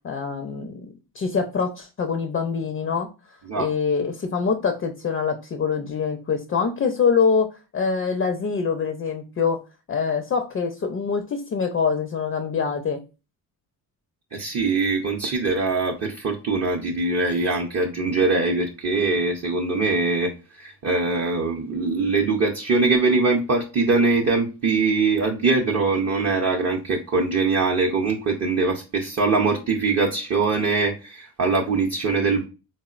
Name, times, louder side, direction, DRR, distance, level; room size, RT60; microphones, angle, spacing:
voice 1, 0.0-3.1 3.6-9.6 9.9-13.0, left 5 dB, 30° left, 6 dB, 0.4 m, -24 dB
voice 2, 14.3-32.4, right 3 dB, 35° right, 0 dB, 0.5 m, -22 dB
3.6 x 2.0 x 2.4 m, 0.31 s
supercardioid pair, 65°, 48 cm